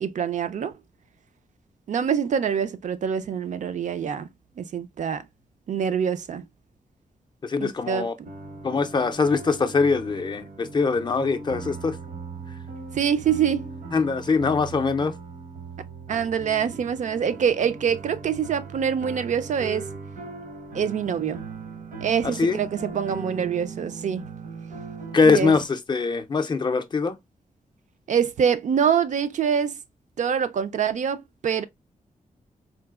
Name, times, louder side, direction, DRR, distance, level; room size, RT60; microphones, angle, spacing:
voice 1, 0.0-0.7 1.9-4.3 4.6-5.2 5.7-6.4 7.6-8.1 12.9-13.7 16.1-19.9 20.7-21.4 22.0-24.3 25.3-25.5 28.1-29.8 30.2-31.6, right 7 dB, 65° right, 0.4 m, -25 dB
voice 2, 7.4-8.1 8.6-12.0 12.5-12.6 13.9-15.1 22.2-22.6 25.1-27.2, left 4 dB, 35° left, 0.4 m, -23 dB
sound 1, 8.2-25.7, right 4 dB, 80° right, 0.9 m, -39 dB
3.8 x 2.4 x 2.3 m
wide cardioid pair, 150°, 14 cm